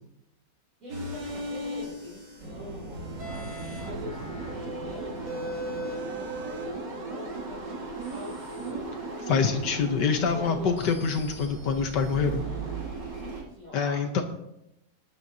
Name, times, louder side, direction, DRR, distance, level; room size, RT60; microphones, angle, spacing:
voice 1, 0.8-3.5 3.8-9.0 10.3-10.9 12.2-12.7 13.1-14.2, equal, 50° right, -7 dB, 3.9 m, -44 dB
sound 1, 0.9-13.4, right 2 dB, 80° right, 3.6 m, -36 dB
voice 2, 9.3-12.4 13.7-14.2, left 5 dB, 75° left, 6 dB, 1.6 m, -25 dB
19.5 x 10.5 x 2.8 m, 0.85 s
omnidirectional pair, 1.9 m